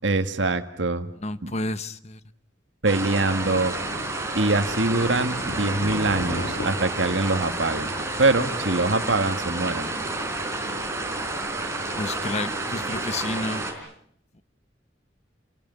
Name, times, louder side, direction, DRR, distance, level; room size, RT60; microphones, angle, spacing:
voice 1, 0.0-1.1 1.4-1.5 2.8-3.7 4.3-7.9 8.2-9.9, right 2 dB, 80° right, 1.9 m, -24 dB
voice 2, 1.2-2.2 12.0-13.6, left 2 dB, 40° left, 1.0 m, -30 dB
sound 1, 2.8-13.7, right 2 dB, 15° right, 4.6 m, -30 dB
Thunder, 3.3-13.3, equal, 85° left, 6.1 m, -40 dB
29.5 x 18.5 x 9.5 m
head